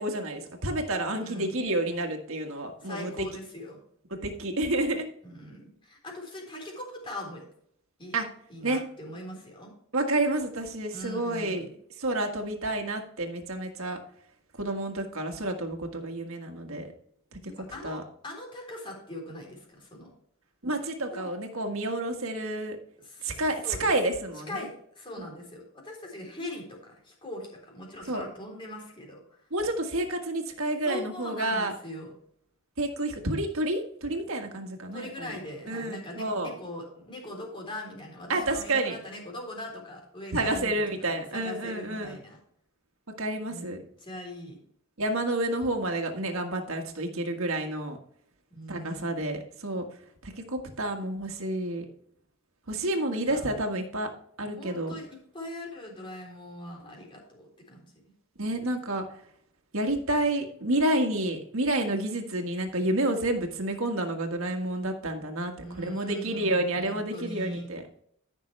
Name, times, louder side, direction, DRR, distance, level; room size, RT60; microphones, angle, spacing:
voice 1, 0.0-3.3 4.1-5.1 8.1-8.3 8.6-8.8 9.9-11.7 12.0-14.0 14.6-16.9 17.3-17.4 17.8-18.0 20.6-22.8 23.2-24.7 25.2-25.3 28.1-28.2 29.5-31.7 32.8-35.3 35.7-36.5 38.3-39.0 40.3-42.2 43.2-43.8 45.0-48.0 48.7-49.8 50.2-51.9 52.7-54.1 54.4-54.9 58.4-59.0 59.7-67.8, right 1 dB, 70° right, 3 dB, 1.7 m, -29 dB
voice 2, 1.2-1.6 2.8-3.8 5.2-7.5 8.0-8.1 8.5-9.7 10.9-11.7 17.4-20.1 21.1-21.3 23.0-23.9 24.5-29.2 30.8-32.1 34.9-42.4 43.5-43.7 44.0-44.6 48.5-49.2 52.8-53.4 54.6-57.8 65.6-67.7, left 1 dB, 25° left, 0 dB, 3.7 m, -41 dB
14.0 x 6.1 x 3.3 m, 0.66 s
head